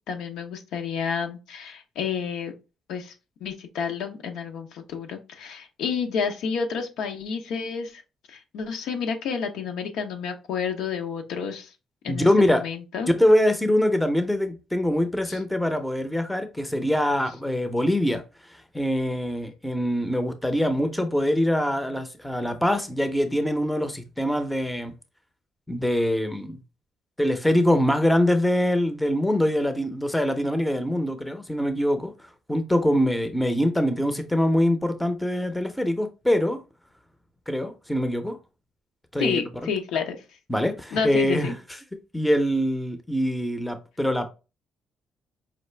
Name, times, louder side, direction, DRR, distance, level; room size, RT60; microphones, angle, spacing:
voice 1, 0.1-2.5 2.9-3.1 3.4-8.0 8.3-11.7 12.0-13.1 15.3-15.4 39.2-40.2 40.9-41.6, left 6 dB, 85° left, 0.8 m, -30 dB
voice 2, 12.1-12.6 13.2-18.2 18.7-24.9 25.7-26.6 27.2-32.1 32.5-36.6 37.5-38.4 39.1-39.4 40.5-41.6 42.1-44.3, left 1 dB, 5° left, 0.6 m, -23 dB
5.0 x 2.4 x 3.2 m
cardioid pair, 130°, 0 cm